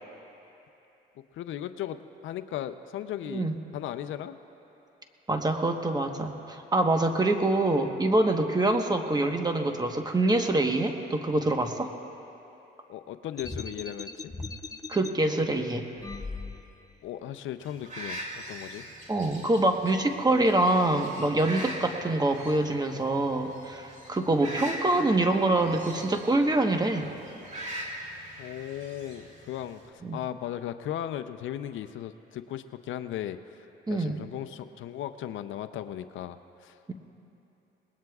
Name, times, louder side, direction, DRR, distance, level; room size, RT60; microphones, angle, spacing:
voice 1, 1.3-2.0 2.2-4.4 12.9-14.3 17.0-18.2 18.5-18.8 28.4-33.4 33.9-36.8, left 11 dB, 75° left, 10 dB, 0.6 m, -36 dB
voice 2, 5.3-11.9 14.9-15.8 19.1-27.1 30.0-30.2 33.9-34.2, right 2 dB, 20° right, 4 dB, 1.2 m, -25 dB
sound 1, 13.4-15.1 16.0-16.9, left 3 dB, 15° left, 0.6 m, -38 dB
sound 2, 17.6-29.9, right 1 dB, 40° right, 2.5 m, -42 dB
26.5 x 20.0 x 2.4 m, 2.9 s
cardioid pair, 90°, 20 cm